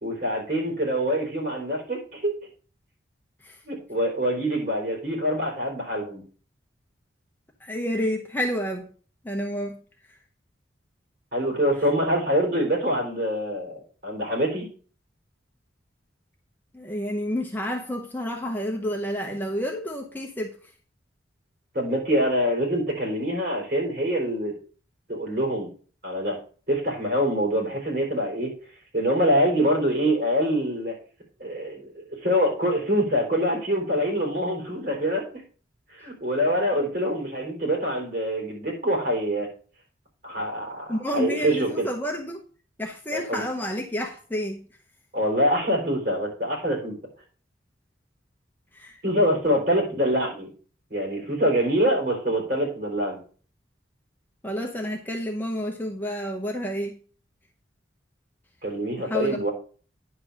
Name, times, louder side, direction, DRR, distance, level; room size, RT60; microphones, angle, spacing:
voice 1, 0.0-2.3 3.7-6.2 11.3-14.7 21.7-24.5 25.1-25.7 26.0-26.4 26.7-28.5 28.9-30.9 31.4-35.2 35.9-39.5 40.2-41.9 43.1-43.4 45.1-46.9 49.0-50.5 50.9-53.2 58.6-59.5, equal, 45° right, -1 dB, 3.7 m, -25 dB
voice 2, 7.6-8.9 9.2-9.8 10.1-10.2 16.7-20.6 40.9-42.4 42.8-44.6 48.7-49.0 54.4-57.0 59.0-59.5, equal, 10° left, 1 dB, 0.8 m, -30 dB
10.0 x 4.0 x 6.4 m, 0.41 s
head